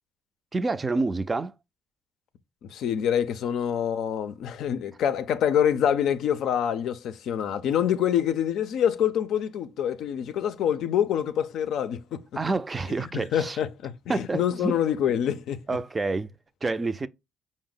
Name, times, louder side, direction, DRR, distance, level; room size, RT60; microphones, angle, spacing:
voice 1, 0.5-1.5 12.4-13.6 14.1-14.8 15.7-17.1, right 3 dB, 25° right, 0.4 m, -28 dB
voice 2, 2.6-12.4 12.9-15.8, left 9 dB, 75° left, 0.4 m, -26 dB
4.9 x 2.0 x 3.7 m
cardioid pair, 85°, 0 cm